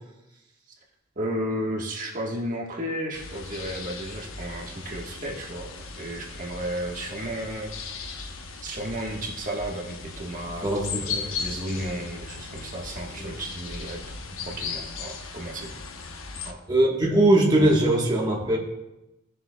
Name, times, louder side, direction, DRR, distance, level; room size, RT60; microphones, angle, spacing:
voice 1, 1.1-7.7 8.6-14.0 14.5-15.7 16.4-16.6, right 1 dB, 40° right, -1 dB, 1.4 m, -33 dB
sound 1, 3.1-16.5, left 5 dB, 75° left, 0.9 m, -37 dB
voice 2, 10.6-11.3 11.7-11.9 13.2-13.3 16.7-18.6, right 1 dB, 20° right, -3 dB, 1.3 m, -21 dB
17.0 x 7.2 x 2.3 m, 0.94 s
head